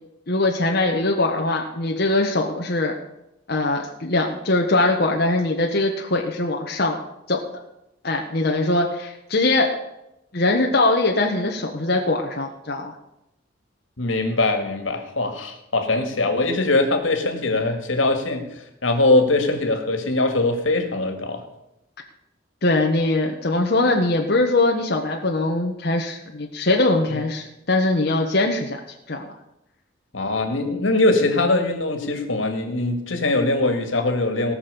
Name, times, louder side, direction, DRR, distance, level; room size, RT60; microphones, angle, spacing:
voice 1, 0.3-2.9 3.5-7.0 7.3-7.4 8.0-9.7 10.3-12.9 22.6-28.8 29.1-29.3, left 2 dB, 55° left, 1 dB, 1.3 m, -21 dB
voice 2, 14.0-18.5 18.8-21.4 30.1-34.5, left 2 dB, 85° left, 5 dB, 2.1 m, -21 dB
18.5 x 6.3 x 6.9 m, 0.87 s
head